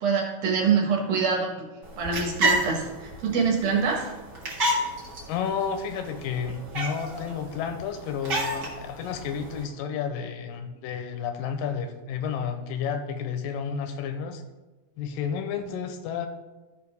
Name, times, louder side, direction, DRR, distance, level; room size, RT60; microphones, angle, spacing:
voice 1, 0.0-1.5 2.0-4.1, right 5 dB, 65° right, 0 dB, 2.7 m, -25 dB
sound 1, 1.8-9.6, right 1 dB, 40° right, 1.9 m, -31 dB
voice 2, 5.3-14.4 15.0-16.3, left 7 dB, 85° left, 7 dB, 2.3 m, -31 dB
14.0 x 5.2 x 3.4 m, 1.1 s
omnidirectional pair, 4.1 m